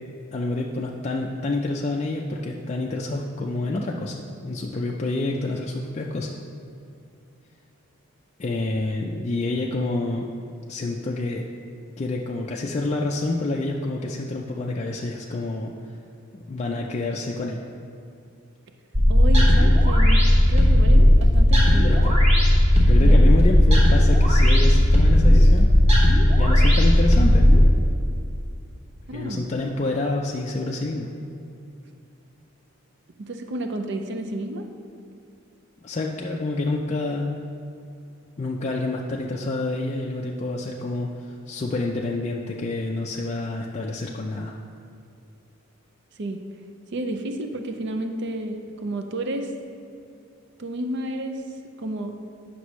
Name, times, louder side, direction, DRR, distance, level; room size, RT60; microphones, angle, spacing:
voice 1, 0.3-6.4 8.4-10.3 10.7-11.5 12.0-15.7 16.5-17.6 21.8-22.2 22.9-25.7 26.3-27.7 29.1-31.1 35.8-37.4 38.4-44.6, left 2 dB, 30° left, -1 dB, 0.4 m, -28 dB
sound 1, 18.9-27.7, left 1 dB, 30° right, 1.2 m, -15 dB
voice 2, 19.1-22.1 23.0-23.2 29.1-29.4 33.2-34.7 46.2-46.4 46.9-49.5 50.6-51.4 51.8-52.2, right 1 dB, 55° right, 5 dB, 0.5 m, -31 dB
9.6 x 5.9 x 3.1 m, 2.5 s
head